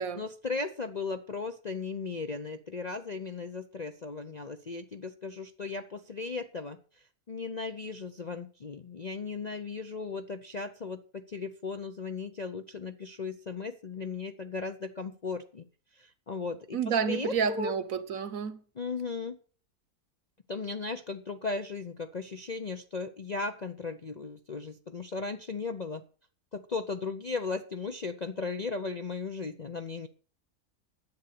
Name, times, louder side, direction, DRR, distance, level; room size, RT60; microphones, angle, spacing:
voice 1, 0.1-6.8 7.3-15.6 16.0-16.8 17.0-17.7 18.8-19.4 20.5-26.0 26.5-30.1, left 4 dB, 45° left, 0.5 m, -36 dB
voice 2, 16.7-18.6, right 6 dB, 60° right, 1.2 m, -30 dB
10.5 x 8.3 x 6.6 m
omnidirectional pair, 1.7 m